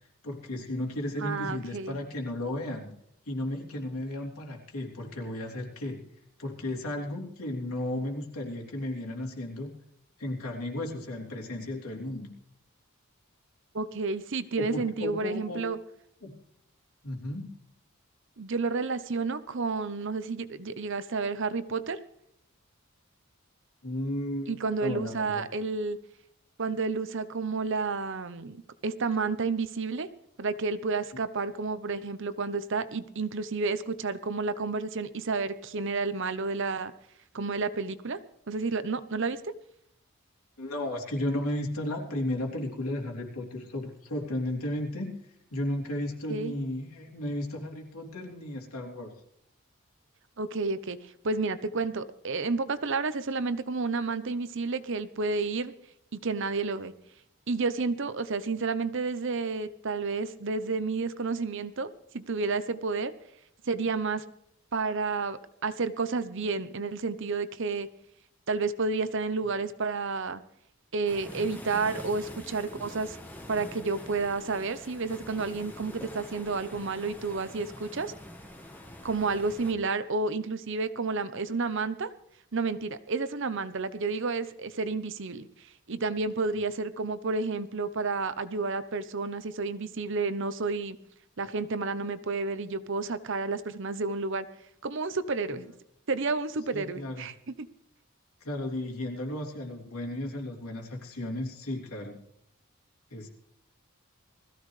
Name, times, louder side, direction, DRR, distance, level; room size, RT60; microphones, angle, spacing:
voice 1, 0.2-2.9 3.2-6.0 6.4-9.7 10.2-12.3 14.5-15.6 16.2-16.3 17.0-17.5 23.8-25.4 40.6-45.1 45.5-49.1 95.5-95.6 96.7-97.3 98.4-102.2 103.1-103.3, left 1 dB, 85° left, 0 dB, 3.4 m, -34 dB
voice 2, 1.2-2.0 13.7-15.8 18.4-22.0 24.5-26.0 26.6-30.1 30.4-36.9 37.3-38.2 38.5-39.5 46.3-46.5 50.4-51.0 51.2-55.7 56.1-56.9 57.5-63.1 63.7-64.2 64.7-67.9 68.5-70.4 70.9-73.2 73.5-78.1 79.0-82.1 82.5-85.5 85.9-91.0 91.4-94.5 94.8-95.7 96.1-97.7, right 4 dB, 60° right, 13 dB, 0.8 m, -31 dB
sound 1, 71.1-79.7, left 1 dB, 10° left, 1.6 m, -45 dB
20.5 x 15.0 x 3.3 m, 0.74 s
head